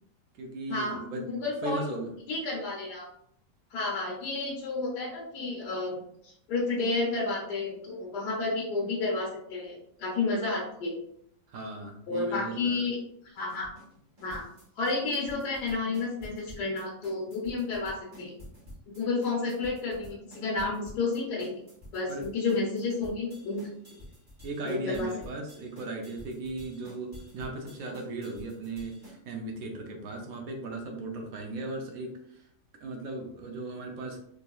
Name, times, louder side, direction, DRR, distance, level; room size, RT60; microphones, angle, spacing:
voice 1, 0.4-2.1 11.5-12.8 22.1-22.3 24.4-32.4 32.8-34.2, right 2 dB, 65° right, 2 dB, 1.0 m, -37 dB
voice 2, 1.3-1.9 2.3-3.0 3.7-6.0 6.2-10.9 12.1-13.0 13.3-13.7 14.2-14.4 14.8-18.3 18.9-21.5 21.9-23.7 24.6-25.1, left 3 dB, 75° left, -4 dB, 1.3 m, -31 dB
sound 1, 13.4-29.2, equal, 25° right, 1.3 m, -49 dB
3.6 x 3.0 x 2.3 m, 0.70 s
omnidirectional pair, 1.8 m